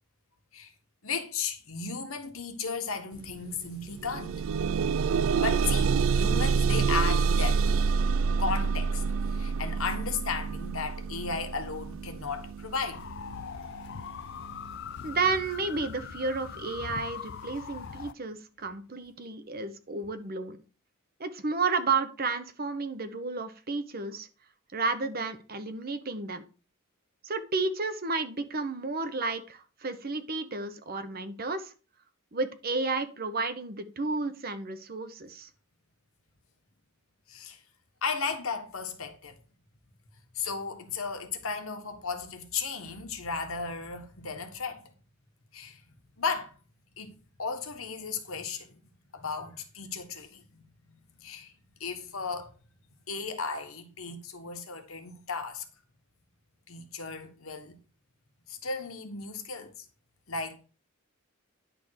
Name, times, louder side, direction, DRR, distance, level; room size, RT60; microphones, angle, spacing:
voice 1, 1.0-4.4 5.4-7.6 8.4-13.0 37.3-37.6 38.0-39.4 40.3-44.8 45.5-45.8 46.2-46.5 47.0-48.8 49.1-51.5 51.8-52.6 53.1-55.7 56.7-57.8 58.5-59.8 60.3-60.6, left 5 dB, 75° left, 1.4 m, -35 dB
sound 1, 3.2-3.3 3.7-14.7 15.5-15.6 16.1-16.2, right 5 dB, 65° right, 0.4 m, -27 dB
sound 2, 12.9-18.1, left 8 dB, 55° left, 0.3 m, -41 dB
voice 2, 15.0-20.6 21.2-24.3 24.7-26.4 27.2-31.7 32.3-35.5, right 3 dB, 45° right, 0.9 m, -32 dB
10.5 x 3.6 x 6.4 m
head